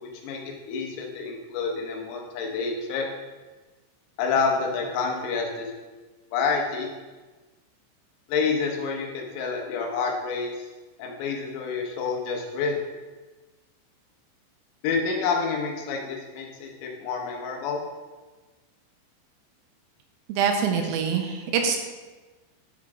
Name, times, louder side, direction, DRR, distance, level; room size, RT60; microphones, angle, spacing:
voice 1, 0.7-3.1 4.2-5.7 6.3-6.9 8.3-10.7 11.0-12.8 14.8-17.8, left 5 dB, 85° left, 1 dB, 3.8 m, -28 dB
voice 2, 20.3-21.8, right 6 dB, 85° right, 3 dB, 3.3 m, -24 dB
11.5 x 4.9 x 3.6 m, 1.3 s
omnidirectional pair, 5.9 m